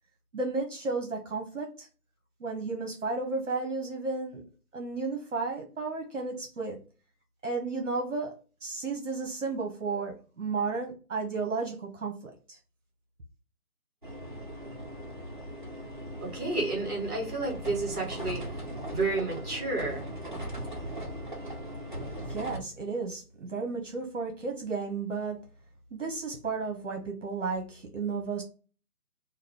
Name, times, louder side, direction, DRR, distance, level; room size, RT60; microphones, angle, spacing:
voice 1, 0.3-1.9 2.4-4.4 4.7-6.8 7.4-8.3 8.6-12.6 22.3-25.4 25.9-28.4, right 4 dB, 55° right, 0.9 m, -33 dB
sound 1, 14.0-22.6, right 1 dB, 35° right, 0.5 m, -39 dB
voice 2, 16.2-18.4 18.9-20.1, right 3 dB, 5° right, 1.5 m, -31 dB
3.0 x 2.3 x 3.4 m
figure-of-eight pair, 170°, 45 cm